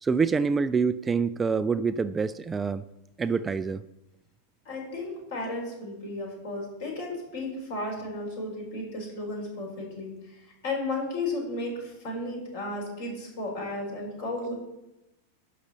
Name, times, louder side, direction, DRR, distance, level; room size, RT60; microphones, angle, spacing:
voice 1, 0.0-2.8 3.2-3.8, right 5 dB, 15° right, 13 dB, 0.3 m, -26 dB
voice 2, 4.6-14.5, left 2 dB, 55° left, 0 dB, 4.4 m, -34 dB
11.5 x 5.2 x 7.1 m, 0.94 s
figure-of-eight pair, 90°, 0 cm